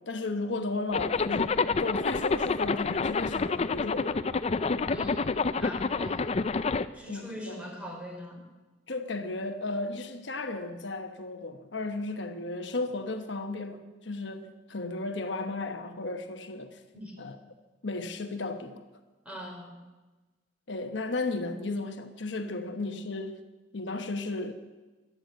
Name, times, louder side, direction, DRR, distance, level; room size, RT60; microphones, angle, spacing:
voice 1, 0.0-4.2 6.1-6.2 7.1-7.6 8.9-16.8 17.2-17.4 17.8-18.8 20.7-23.4 23.7-24.5, left 2 dB, 70° left, 1.1 m, -34 dB
Zipper (clothing), 0.9-6.9, left 4 dB, 35° left, 0.5 m, -28 dB
voice 2, 4.9-6.2 6.9-8.4 16.9-17.2 19.3-19.7, equal, 5° right, 3.8 m, -42 dB
15.0 x 11.0 x 7.8 m
head